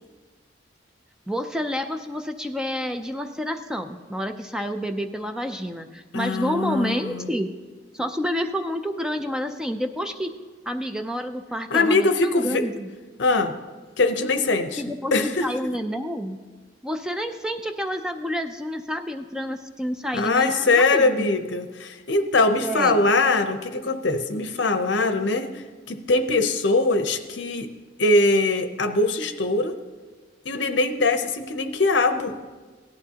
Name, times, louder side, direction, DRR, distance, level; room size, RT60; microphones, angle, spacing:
voice 1, 1.3-7.5 7.9-10.3 10.7-12.9 14.8-15.1 15.4-16.4 16.8-21.3 22.6-23.0, equal, 5° right, 6 dB, 0.4 m, -29 dB
voice 2, 6.1-7.3 11.7-12.6 13.2-13.5 14.0-14.8 15.1-15.5 20.1-27.7 28.0-29.8 30.4-32.3, left 3 dB, 70° left, 9 dB, 0.8 m, -22 dB
17.0 x 11.5 x 2.9 m, 1.3 s
head